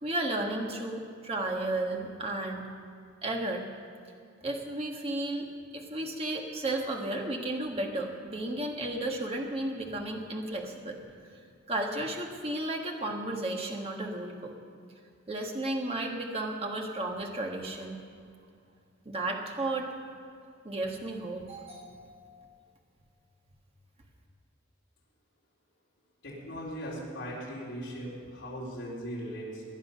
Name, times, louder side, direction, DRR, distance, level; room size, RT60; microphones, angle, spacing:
voice 1, 0.0-2.7 3.2-3.7 4.4-11.0 11.7-14.5 15.3-18.0 19.0-19.9 20.6-22.3, right 1 dB, 30° right, 1 dB, 1.6 m, -33 dB
voice 2, 26.2-29.6, equal, 60° left, -6 dB, 3.6 m, -39 dB
19.5 x 10.5 x 5.8 m, 2.4 s
head